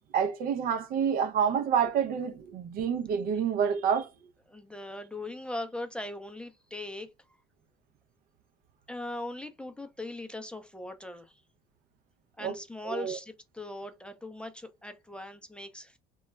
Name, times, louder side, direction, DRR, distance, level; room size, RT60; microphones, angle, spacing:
voice 1, 0.1-4.1 12.4-12.6 12.8-13.2, right 7 dB, 60° right, 0.5 m, -28 dB
voice 2, 4.5-7.1 8.9-11.3 12.4-16.0, left 1 dB, 5° left, 0.4 m, -40 dB
2.2 x 2.0 x 3.2 m
supercardioid pair, 95°, 17 cm